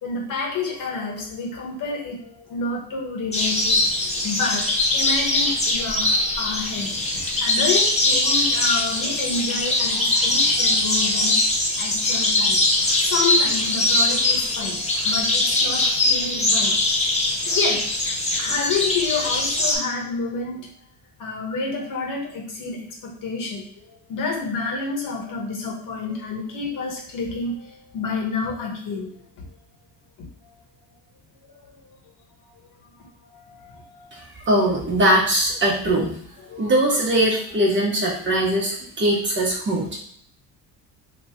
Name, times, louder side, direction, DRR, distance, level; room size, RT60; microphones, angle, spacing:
voice 1, 0.0-3.8 4.2-4.7 4.9-11.4 11.8-12.6 13.0-16.8 17.5-17.9 18.4-20.7 21.2-29.1 30.4-30.5 31.5-31.7 33.2-34.2 36.4-36.6, left 4 dB, 50° left, -1 dB, 1.2 m, -29 dB
sound 1, 3.3-19.8, left 2 dB, 15° left, 0.8 m, -21 dB
voice 2, 34.5-36.1 36.6-39.9, right 1 dB, 30° right, -3 dB, 1.1 m, -20 dB
3.0 x 2.6 x 3.5 m, 0.65 s
cardioid pair, 115°, 39 cm